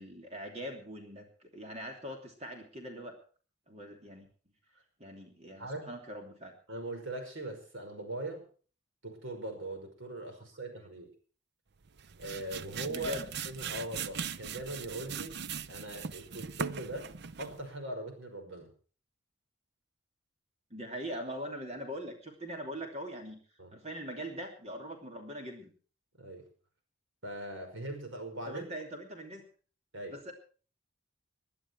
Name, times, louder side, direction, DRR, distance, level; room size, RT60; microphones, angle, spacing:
voice 1, 0.0-3.2 3.7-4.3 5.0-6.5 12.9-13.3 20.7-23.4 23.7-25.7 28.5-29.4 30.1-30.3, equal, 35° right, 3 dB, 3.0 m, -42 dB
voice 2, 5.6-5.9 6.7-8.4 9.0-11.1 12.2-13.2 13.5-15.4 15.7-17.1 17.4-18.7 23.6-23.8 26.2-26.5 27.2-28.7 29.9-30.2, right 1 dB, 75° right, 6 dB, 5.4 m, -40 dB
sound 1, 11.8-17.7, right 6 dB, 60° right, 0.6 m, -40 dB
21.0 x 11.5 x 4.7 m, 0.40 s
head